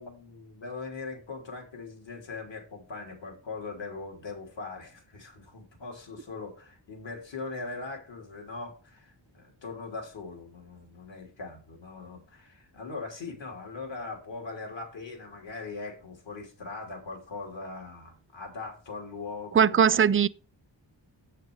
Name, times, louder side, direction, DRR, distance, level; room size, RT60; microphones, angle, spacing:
voice 1, 0.0-20.1, left 3 dB, 75° left, 3.2 m, -40 dB
voice 2, 19.5-20.3, right 8 dB, 30° right, 0.4 m, -20 dB
8.2 x 6.5 x 4.7 m
wide cardioid pair, 120°, 46 cm